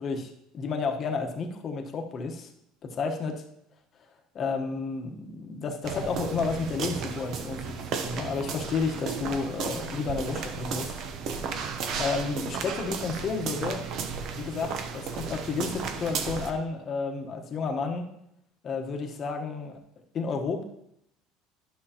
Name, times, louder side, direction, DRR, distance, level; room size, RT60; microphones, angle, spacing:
voice 1, 0.0-2.5 2.8-3.4 4.3-7.7 8.0-10.9 12.0-13.8 14.3-18.1 18.6-19.8 20.1-20.6, left 4 dB, 35° left, 3 dB, 1.1 m, -31 dB
sound 1, 5.8-16.5, right 5 dB, 50° right, 0.8 m, -34 dB
12.0 x 6.2 x 2.9 m, 0.76 s
cardioid pair, 135°, 0 cm